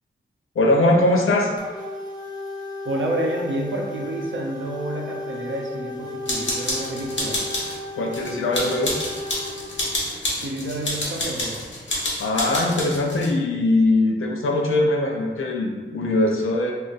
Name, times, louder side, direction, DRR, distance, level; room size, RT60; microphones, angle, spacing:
voice 1, 0.6-1.5 7.9-9.0 11.9-16.7, left 2 dB, 90° left, 0 dB, 0.5 m, -21 dB
sound 1, 1.6-10.0, left 2 dB, 20° left, 0.5 m, -35 dB
voice 2, 2.8-7.4 10.4-11.5, right 1 dB, 70° right, 0 dB, 0.6 m, -29 dB
sound 2, 6.3-7.8 8.1-13.3, left 1 dB, 65° left, 0.9 m, -28 dB
2.5 x 2.4 x 3.9 m, 1.4 s
wide cardioid pair, 115°, 21 cm